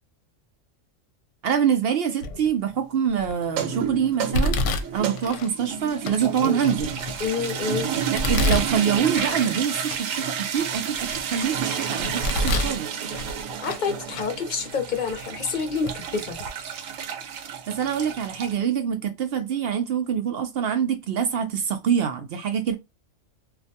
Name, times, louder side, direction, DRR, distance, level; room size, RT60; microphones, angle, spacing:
voice 1, 1.4-4.6 4.9-6.9 8.1-12.9 17.7-22.7, right 8 dB, 60° right, 0.7 m, -25 dB
Domestic sounds home sounds, 2.2-2.6 3.2-3.6 4.3-5.5 6.1-6.2 6.7-7.5 8.2-9.5 9.9-10.0 10.6-11.5 12.0-12.8 13.1-13.9 14.1-14.3 15.1-15.2 15.9-16.0 16.3-16.5, left 1 dB, 75° left, 0.9 m, -27 dB
sound 1, 3.4-18.5, right 7 dB, 85° right, 1.0 m, -30 dB
voice 2, 7.2-7.9 13.6-16.4, left 5 dB, 50° left, 0.7 m, -28 dB
2.5 x 2.2 x 2.6 m
omnidirectional pair, 1.3 m